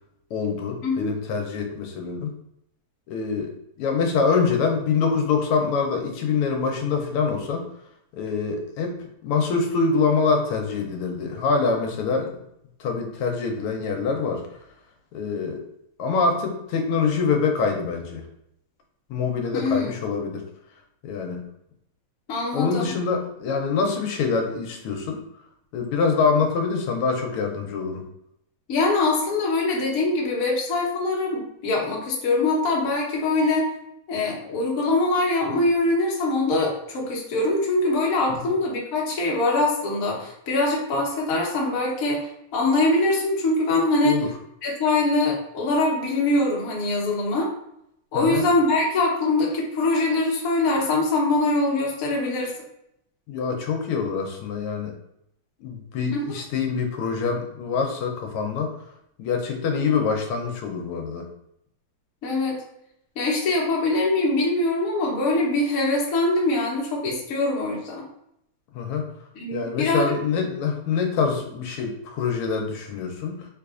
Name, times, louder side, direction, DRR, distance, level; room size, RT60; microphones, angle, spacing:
voice 1, 0.3-2.3 3.1-3.5 3.8-7.7 8.1-12.3 12.8-14.4 15.1-15.6 16.0-18.2 19.1-20.4 21.0-21.4 22.5-25.2 25.7-28.0 38.4-38.5 44.0-44.3 48.1-48.4 53.3-54.9 55.6-58.7 59.2-61.3 68.7-69.0 69.5-73.5, left 5 dB, 85° left, 2 dB, 1.5 m, -25 dB
voice 2, 19.5-19.9 22.3-22.9 28.7-33.7 34.1-44.1 44.6-47.5 48.1-52.5 56.1-56.4 62.2-62.6 63.2-68.0 69.3-70.1, left 2 dB, 55° left, -2 dB, 1.0 m, -23 dB
3.5 x 3.3 x 2.4 m, 0.77 s
omnidirectional pair, 2.4 m